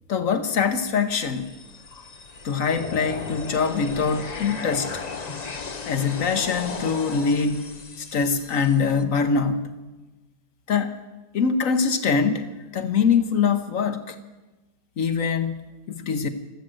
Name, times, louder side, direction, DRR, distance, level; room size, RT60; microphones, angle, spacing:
voice 1, 0.1-1.6 2.4-5.0 5.9-9.7 10.7-11.0 11.3-14.2 15.0-16.3, left 5 dB, 55° left, 9 dB, 1.2 m, -24 dB
sound 1, 1.1-9.0, left 4 dB, 35° left, 0.6 m, -36 dB
14.0 x 13.0 x 7.8 m, 1.2 s
omnidirectional pair, 1.8 m